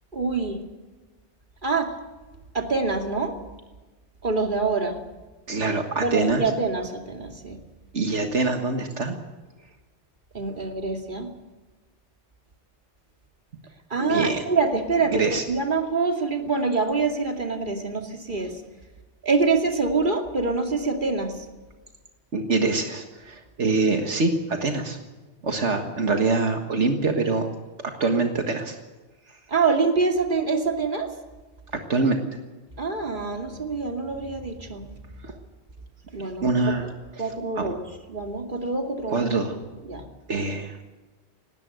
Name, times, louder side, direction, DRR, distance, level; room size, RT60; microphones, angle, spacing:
voice 1, 0.1-0.6 1.6-1.9 2.5-3.4 4.2-5.0 6.0-7.6 10.3-11.3 13.9-18.6 19.2-21.5 29.5-31.1 32.8-34.9 36.1-36.8 37.2-37.8 38.1-39.3 39.8-40.1, right 4 dB, 45° right, 3 dB, 2.6 m, -25 dB
voice 2, 5.5-6.4 7.9-9.2 14.0-14.4 15.1-15.4 22.3-25.0 25.4-27.5 27.8-28.8 29.3-29.4 31.7-32.2 35.2-35.4 36.4-36.9 37.6-37.7 39.1-39.6 40.3-40.8, right 3 dB, 75° right, 4 dB, 1.9 m, -24 dB
19.0 x 18.0 x 7.9 m, 1.2 s
omnidirectional pair, 1.2 m